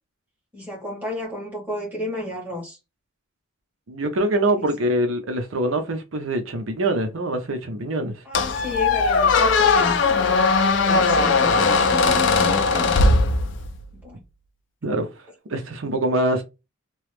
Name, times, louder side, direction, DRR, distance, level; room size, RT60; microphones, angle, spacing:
voice 1, 0.5-2.8 4.6-4.7 8.2-10.0 10.6-13.0 14.0-14.2, left 2 dB, 10° right, 1.5 m, -31 dB
voice 2, 3.9-8.2 14.8-16.4, right 1 dB, 90° right, 0.7 m, -24 dB
Squeak, 8.3-13.8, left 4 dB, 65° left, 0.5 m, -19 dB
3.0 x 2.3 x 3.3 m
head